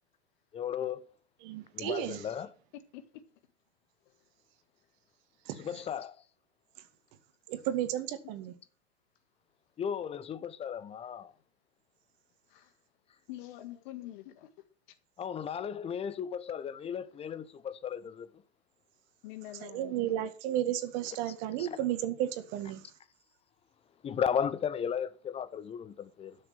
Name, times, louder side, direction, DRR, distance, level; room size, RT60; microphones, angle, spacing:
voice 1, 0.5-1.0 1.7-2.5 5.7-6.2 9.8-11.3 15.2-18.3 21.6-21.7 24.0-26.4, left 8 dB, 20° left, 0.8 m, -35 dB
voice 2, 1.4-2.3 5.5-5.8 6.8-6.9 7.5-8.6 19.6-22.9, right 12 dB, 45° right, 2.0 m, -33 dB
voice 3, 2.7-3.0 4.0-4.1 12.5-12.7 13.3-14.5 19.2-20.3, left 15 dB, 50° left, 1.7 m, -46 dB
12.0 x 6.6 x 7.4 m
figure-of-eight pair, 100°, 32 cm